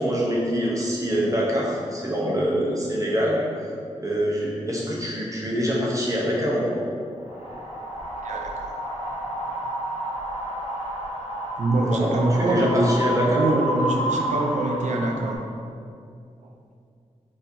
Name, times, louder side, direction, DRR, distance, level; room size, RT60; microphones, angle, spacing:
voice 1, 0.0-3.4 4.0-6.8 11.9-13.4, equal, 25° right, -5 dB, 0.8 m, -24 dB
Wind, 7.3-15.4, right 1 dB, 60° left, 0.7 m, -30 dB
voice 2, 8.2-8.5 11.6-15.4 16.4-16.5, right 2 dB, 70° right, 2 dB, 0.4 m, -24 dB
4.0 x 2.7 x 2.7 m, 2.4 s
cardioid pair, 55°, 13 cm